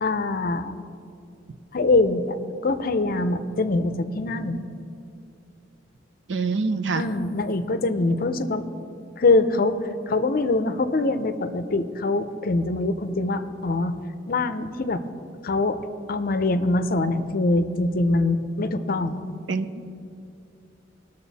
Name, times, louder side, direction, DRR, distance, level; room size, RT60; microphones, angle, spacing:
voice 1, 0.0-0.7 1.7-2.3 2.6-4.6 7.0-8.6 9.2-9.8 10.1-13.9 14.3-15.0 15.4-15.8 16.1-19.2, left 2 dB, 50° left, 10 dB, 0.6 m, -23 dB
voice 2, 6.3-7.0 19.5-19.9, right 4 dB, 70° right, 10 dB, 0.6 m, -26 dB
19.5 x 6.6 x 4.1 m, 2.5 s
head